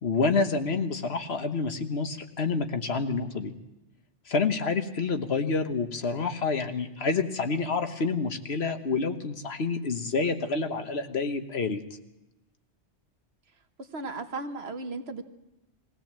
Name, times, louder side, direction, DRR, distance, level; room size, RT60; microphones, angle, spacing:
voice 1, 0.0-3.5 4.3-11.8, left 4 dB, 65° left, 7 dB, 1.5 m, -28 dB
voice 2, 13.8-15.2, right 3 dB, 65° right, 7 dB, 1.5 m, -35 dB
21.5 x 16.0 x 7.5 m, 0.95 s
omnidirectional pair, 1.2 m